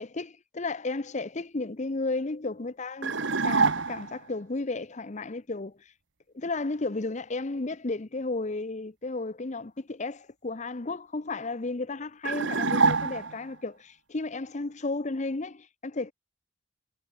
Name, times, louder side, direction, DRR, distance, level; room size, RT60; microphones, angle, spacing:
voice 1, 0.0-3.1 3.4-5.8 6.3-16.1, left 3 dB, 40° left, 0.8 m, -33 dB
sound 1, 3.0-4.2 12.3-13.6, right 4 dB, 80° right, 1.6 m, -25 dB
head